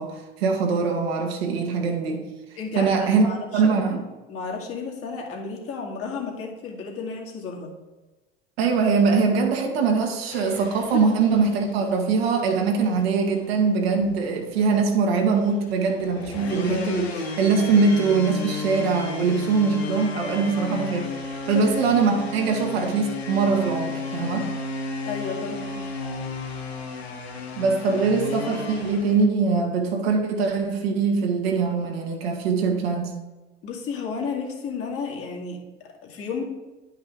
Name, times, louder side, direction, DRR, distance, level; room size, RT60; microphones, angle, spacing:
voice 1, 0.0-2.2 2.7-4.0 8.6-21.1 21.5-24.5 27.6-33.2, right 4 dB, 70° right, 2 dB, 1.6 m, -22 dB
voice 2, 2.6-4.0 4.3-7.7 10.9-11.1 21.4-21.7 25.0-25.8 27.4-27.6 33.6-36.4, left 5 dB, 45° left, 0 dB, 2.2 m, -33 dB
sound 1, 10.3-29.2, left 4 dB, 80° left, 1.3 m, -34 dB
10.5 x 5.4 x 3.7 m, 1.1 s
figure-of-eight pair, 70°, 31 cm